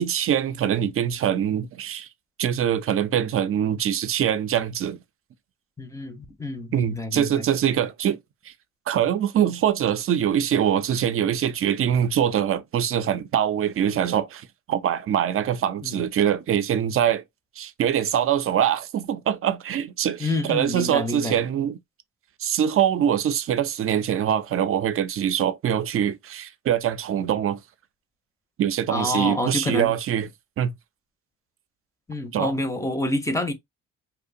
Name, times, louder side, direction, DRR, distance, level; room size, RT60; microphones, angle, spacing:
voice 1, 0.0-2.1 2.4-5.0 6.7-8.2 8.4-8.5 8.9-17.2 17.6-21.8 22.4-27.6 28.6-30.3 30.6-30.7 32.3-32.5, right 9 dB, 45° right, 0.5 m, -23 dB
voice 2, 5.8-7.5 15.8-16.0 20.2-21.4 28.9-29.9 32.1-33.5, left 1 dB, 10° left, 0.6 m, -28 dB
2.8 x 2.1 x 2.5 m
cardioid pair, 90°, 30 cm